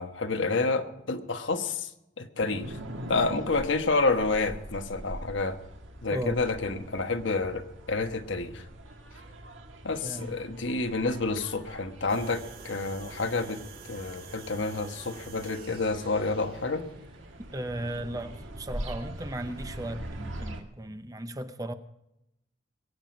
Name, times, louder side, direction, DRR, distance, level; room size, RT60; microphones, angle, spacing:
voice 1, 0.0-1.9 2.2-2.8 3.1-5.6 6.0-8.6 9.8-13.6 13.9-16.8, left 3 dB, 75° left, 7 dB, 1.3 m, -29 dB
sound 1, 2.4-20.6, right 1 dB, 80° right, 1.9 m, -43 dB
voice 2, 6.1-6.4 10.0-10.4 17.5-21.7, right 1 dB, 20° right, 9 dB, 0.7 m, -36 dB
sound 2, 12.1-17.9, right 4 dB, 45° right, 3.4 m, -48 dB
22.5 x 9.1 x 5.2 m, 0.88 s
head